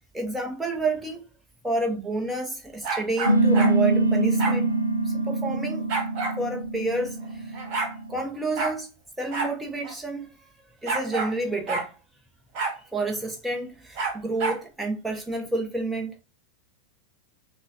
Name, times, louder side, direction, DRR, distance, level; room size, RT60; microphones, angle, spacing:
voice 1, 0.1-1.2 1.6-5.9 6.4-7.6 8.1-8.9 9.2-10.3 10.8-11.9 12.9-16.2, right 2 dB, 5° right, 1.1 m, -29 dB
sound 1, 2.8-3.7 4.4-4.6 5.9-6.4 7.2-7.3 7.5-7.9 8.6-8.8 9.3-9.5 9.8-9.9 10.9-11.3 11.7-11.9 12.5-12.8 14.0-14.6, right 4 dB, 40° right, 1.6 m, -28 dB
sound 2, 3.3-8.2, right 2 dB, 90° left, 0.6 m, -24 dB
5.8 x 2.3 x 2.7 m
figure-of-eight pair, 90°, 0 cm